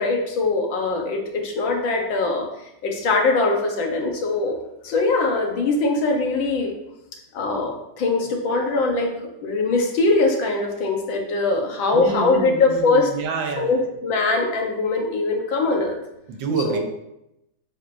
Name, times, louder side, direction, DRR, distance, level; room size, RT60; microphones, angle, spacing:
voice 1, 0.0-2.5 2.8-4.6 4.8-6.7 7.3-9.1 9.4-13.1 13.6-16.0 16.6-16.8, left 3 dB, 80° left, 1 dB, 1.8 m, -22 dB
voice 2, 11.9-13.8 16.3-16.8, right 4 dB, 75° right, 3 dB, 1.6 m, -27 dB
9.4 x 5.0 x 2.6 m, 0.86 s
omnidirectional pair, 2.1 m